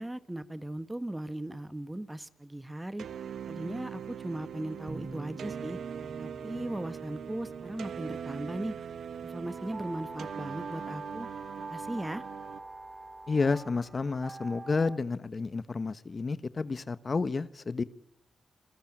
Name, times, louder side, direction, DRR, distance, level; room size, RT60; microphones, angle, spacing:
voice 1, 0.0-3.1 3.5-5.8 6.2-8.7 9.2-11.3 11.7-12.2, right 1 dB, 15° right, 14 dB, 1.6 m, -38 dB
sound 1, 3.0-12.6, right 8 dB, 80° right, 1.2 m, -41 dB
sound 2, 4.9-14.3, right 3 dB, 50° right, 7.5 m, -51 dB
sound 3, 9.4-15.0, right 2 dB, 35° right, 2.2 m, -44 dB
voice 2, 13.3-17.8, left 4 dB, 45° left, 15 dB, 1.2 m, -30 dB
28.5 x 21.0 x 8.9 m, 0.76 s
cardioid pair, 65°, 0 cm